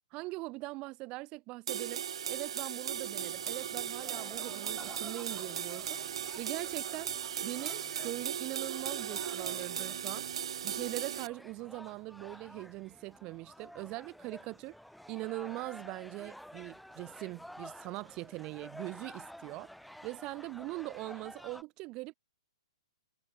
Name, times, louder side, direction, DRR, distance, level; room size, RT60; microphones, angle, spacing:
voice 1, 0.1-6.0 6.4-7.1 7.4-10.3 10.6-14.8 15.1-19.7 20.0-22.1, right 22 dB, 25° right, 0.9 m, -41 dB
sound 1, 1.7-11.3, right 9 dB, 70° right, 0.6 m, -37 dB
sound 2, 2.9-21.6, equal, ahead, 3.2 m, -52 dB
hypercardioid pair, 165°, 3 cm